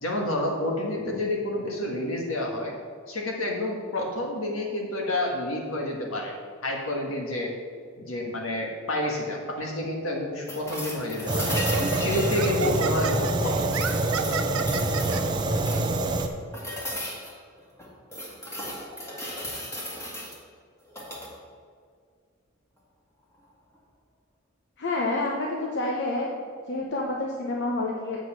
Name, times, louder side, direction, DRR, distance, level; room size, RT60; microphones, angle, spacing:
voice 1, 0.0-2.7 3.1-6.3 6.6-7.5 8.0-11.5 12.0-13.5, left 1 dB, 75° left, 0 dB, 1.7 m, -29 dB
sound 1, 10.5-13.3 13.7-16.0 16.5-17.3 17.8-20.4 20.9-21.3 23.3-23.4, equal, 15° left, 1.6 m, -36 dB
Laughter, 10.7-10.9 11.6-15.2, right 6 dB, 80° right, 0.6 m, -32 dB
Fire, 11.3-16.3, right 2 dB, 20° right, 0.6 m, -26 dB
voice 2, 24.8-26.4 26.7-28.2, left 2 dB, 60° left, -1 dB, 0.9 m, -28 dB
7.8 x 5.1 x 7.3 m, 2.1 s
head